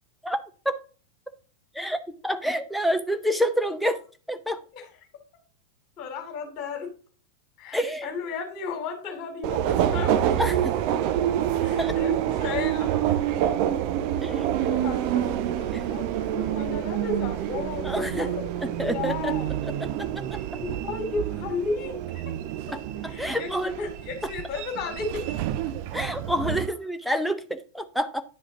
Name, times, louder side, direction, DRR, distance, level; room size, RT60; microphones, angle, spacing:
voice 1, 1.8-4.0 4.3-4.6 7.7-8.1 10.4-10.8 11.8-11.9 14.2-14.5 15.7-15.8 17.8-18.3 18.8-19.3 23.2-23.8 25.9-28.2, equal, ahead, 8 dB, 0.8 m, -27 dB
voice 2, 6.0-6.9 7.6-10.1 11.6-13.7 14.1-19.5 20.5-22.3 23.0-25.2, left 4 dB, 40° left, 2 dB, 2.5 m, -34 dB
Subway metro underground, 9.4-26.7, right 11 dB, 45° right, 0.7 m, -27 dB
10.5 x 4.9 x 3.7 m, 0.38 s
figure-of-eight pair, 90°, 0 cm